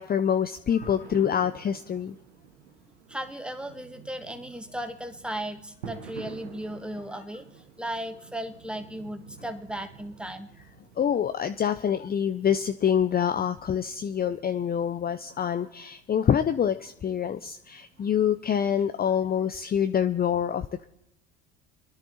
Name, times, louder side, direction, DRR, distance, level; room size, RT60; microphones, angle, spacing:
voice 1, 0.0-2.2 11.0-20.9, left 8 dB, 30° left, 10 dB, 0.7 m, -26 dB
sound 1, 0.8-18.8, right 7 dB, 85° right, 1.6 m, -50 dB
voice 2, 3.1-7.4 7.8-10.5, right 1 dB, 5° right, 7 dB, 2.0 m, -36 dB
29.0 x 10.5 x 4.3 m, 0.83 s
hypercardioid pair, 70°, 33 cm